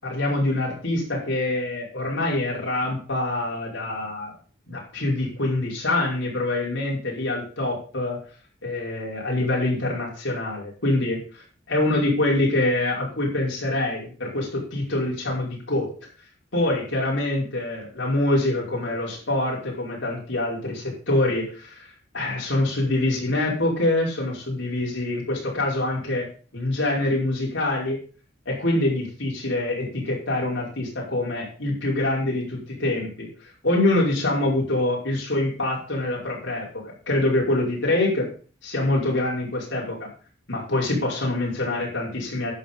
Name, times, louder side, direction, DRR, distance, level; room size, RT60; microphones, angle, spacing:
voice 1, 0.0-4.3 4.7-8.2 8.6-15.9 16.5-21.9 22.1-26.3 26.5-28.0 28.5-33.3 33.6-38.3 38.6-40.1 40.5-42.5, left 2 dB, 70° left, -3 dB, 5.3 m, -25 dB
11.0 x 7.7 x 5.5 m, 0.40 s
head